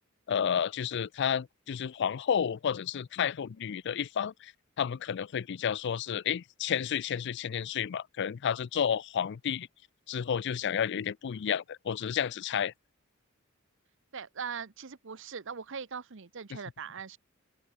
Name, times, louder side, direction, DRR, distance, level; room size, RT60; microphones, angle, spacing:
voice 1, 0.3-4.5 4.8-9.7 10.1-12.7, left 8 dB, 55° left, 0.4 m, -31 dB
voice 2, 14.1-17.2, right 6 dB, 60° right, 0.9 m, -40 dB
open air
head